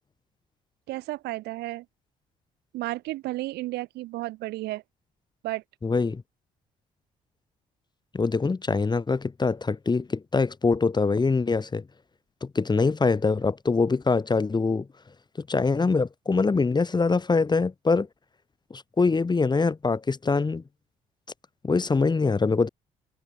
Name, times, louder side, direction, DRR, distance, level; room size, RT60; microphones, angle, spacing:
voice 1, 0.9-1.8 2.7-4.8 5.4-5.6, right 18 dB, 65° right, 3.0 m, -32 dB
voice 2, 5.8-6.2 8.1-11.8 12.4-14.9 15.4-18.1 18.7-20.6 21.6-22.7, left 4 dB, 25° left, 1.5 m, -24 dB
figure-of-eight pair, 50°, 18 cm